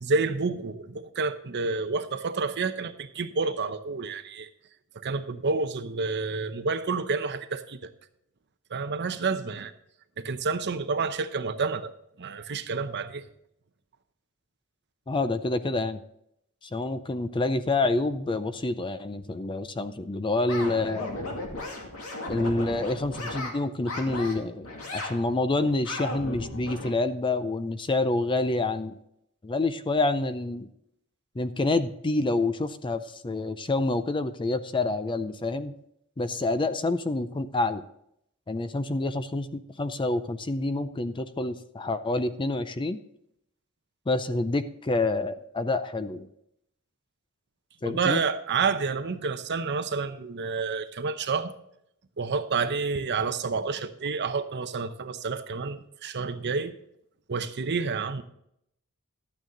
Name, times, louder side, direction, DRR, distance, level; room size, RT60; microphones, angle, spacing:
voice 1, 0.0-4.5 4.9-7.8 8.7-9.7 10.2-11.9 12.2-13.2 47.8-51.5 52.2-56.7 57.3-58.2, right 4 dB, 50° right, 10 dB, 0.7 m, -29 dB
voice 2, 15.1-16.0 16.6-21.1 22.3-29.0 29.4-30.7 31.4-35.7 36.2-37.8 38.5-43.0 44.1-46.3 47.8-48.2, left 2 dB, 20° left, 12 dB, 0.5 m, -27 dB
sound 1, 20.5-23.5 23.8-24.3 24.6-25.1 25.6-26.9, left 2 dB, 70° left, 2.4 m, -35 dB
12.5 x 9.0 x 3.9 m, 0.75 s
head